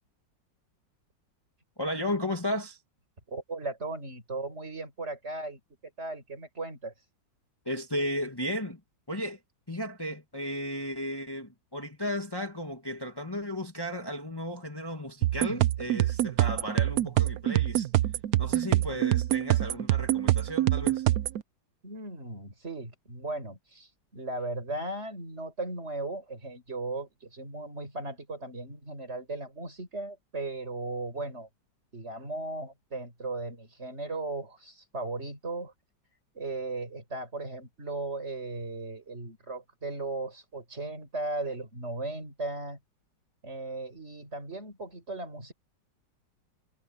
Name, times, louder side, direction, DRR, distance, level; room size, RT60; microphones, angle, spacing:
voice 1, 1.8-2.8 7.7-8.8 9.1-9.4 9.7-17.9 18.4-21.0, equal, 15° left, 1.9 m, -34 dB
voice 2, 3.3-5.6 6.0-6.9 21.8-31.5 31.9-35.7 36.3-42.8 43.4-45.5, right 2 dB, 35° right, 6.3 m, -37 dB
sound 1, 15.2-21.4, right 14 dB, 65° right, 1.0 m, -25 dB
omnidirectional pair, 2.0 m